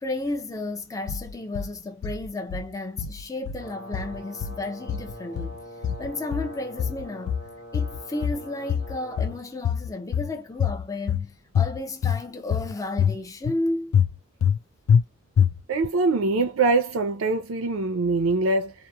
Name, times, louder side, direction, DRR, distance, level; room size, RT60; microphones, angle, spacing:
voice 1, 0.0-5.6 6.0-7.4 7.7-14.0, left 2 dB, 15° left, 0.4 m, -33 dB
sound 1, 1.1-1.7 2.0-2.7 3.0-3.7 3.9-4.6 4.9-5.6 5.8-6.5 6.8-7.5 7.7-8.4 8.7-9.4 9.6-10.3 10.6-11.3 11.6-12.2 12.5-13.2 13.4-13.6 13.9-14.6 14.9-15.0 15.4-15.9, left 8 dB, 80° left, 0.3 m, -24 dB
Brass instrument, 3.6-9.4, equal, 45° left, 1.3 m, -43 dB
voice 2, 15.7-18.7, right 3 dB, 80° right, 0.5 m, -23 dB
2.9 x 2.0 x 2.2 m
head